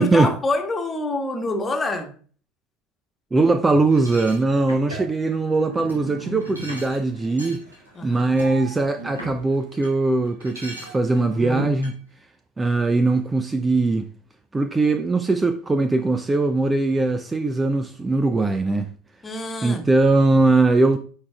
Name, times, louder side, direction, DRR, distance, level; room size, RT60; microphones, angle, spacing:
voice 1, 0.0-2.1 7.9-8.4 19.2-19.9, left 2 dB, 20° left, 1.3 m, -26 dB
voice 2, 3.3-7.6 8.0-12.0 12.6-14.1 14.5-18.9 19.6-21.0, right 3 dB, 15° right, 0.4 m, -20 dB
sound 1, 3.9-9.9 10.2-11.9, right 3 dB, 85° right, 1.9 m, -36 dB
9.6 x 4.9 x 2.3 m
figure-of-eight pair, 75°, 0 cm